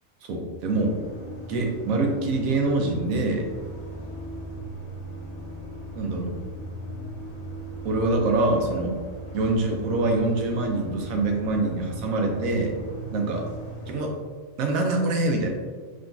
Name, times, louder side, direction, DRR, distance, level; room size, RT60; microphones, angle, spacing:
voice 1, 0.3-0.9 1.5-3.5 6.0-6.3 7.8-8.9 9.3-12.7 13.1-13.4 13.9-14.2 14.6-15.5, right 2 dB, 80° right, 2 dB, 1.0 m, -24 dB
sound 1, 0.7-14.0, right 1 dB, 75° left, 1.1 m, -38 dB
3.7 x 2.3 x 2.4 m, 1.5 s
omnidirectional pair, 1.4 m